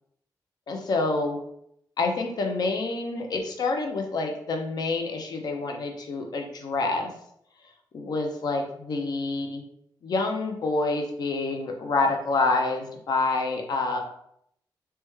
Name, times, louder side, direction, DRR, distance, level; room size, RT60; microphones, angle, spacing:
voice 1, 0.7-1.4 2.0-7.1 7.9-9.6 10.0-14.0, left 3 dB, 60° left, 3 dB, 0.5 m, -27 dB
3.3 x 2.2 x 3.0 m, 0.71 s
wide cardioid pair, 160°, 8 cm